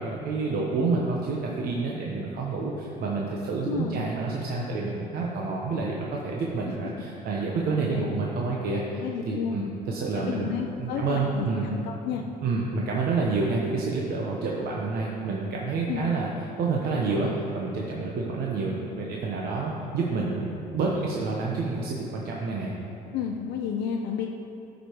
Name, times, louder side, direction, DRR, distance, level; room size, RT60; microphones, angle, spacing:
voice 1, 0.0-10.5 10.8-11.7 12.4-16.3 16.6-22.7, right 3 dB, 65° right, -2 dB, 1.0 m, -28 dB
voice 2, 3.7-4.0 7.7-8.1 8.9-9.7 10.3-12.2 15.9-16.1 23.1-24.3, left 7 dB, 85° left, 2 dB, 0.6 m, -31 dB
13.0 x 5.2 x 4.6 m, 2.9 s
cardioid pair, 110°, 17 cm